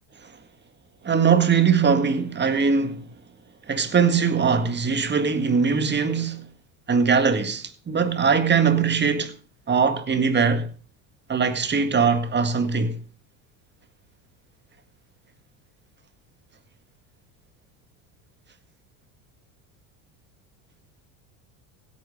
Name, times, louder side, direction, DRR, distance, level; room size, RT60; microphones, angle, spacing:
voice 1, 1.0-3.1 3.7-6.5 6.9-9.3 9.7-10.7 11.3-13.0, right 6 dB, 25° right, 1.9 m, -21 dB
16.5 x 8.9 x 5.4 m
supercardioid pair, 105°, 43 cm